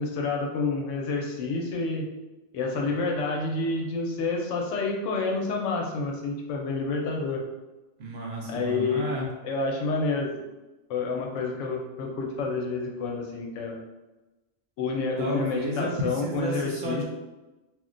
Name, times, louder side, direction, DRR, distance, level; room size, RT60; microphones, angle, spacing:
voice 1, 0.0-2.1 2.5-7.4 8.5-9.0 9.4-10.3 10.9-13.8 14.8-17.0, left 3 dB, 80° left, 0 dB, 0.9 m, -29 dB
voice 2, 8.0-9.3 15.2-17.0, right 1 dB, 65° right, -2 dB, 0.8 m, -32 dB
2.4 x 2.1 x 3.7 m, 1.1 s
omnidirectional pair, 1.2 m